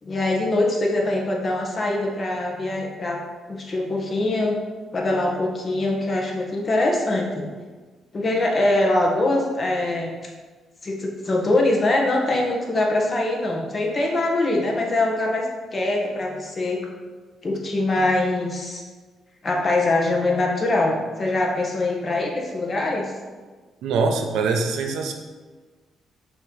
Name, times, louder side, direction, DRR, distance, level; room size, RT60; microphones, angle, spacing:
voice 1, 0.0-3.2 3.5-4.6 4.9-7.5 8.1-10.1 10.8-15.4 15.7-16.8 17.4-18.8 19.4-23.0, left 2 dB, 35° left, 0 dB, 1.3 m, -23 dB
voice 2, 23.8-25.1, right 4 dB, 85° right, 4 dB, 0.7 m, -23 dB
5.9 x 3.0 x 5.5 m, 1.4 s
cardioid pair, 90°, 0 cm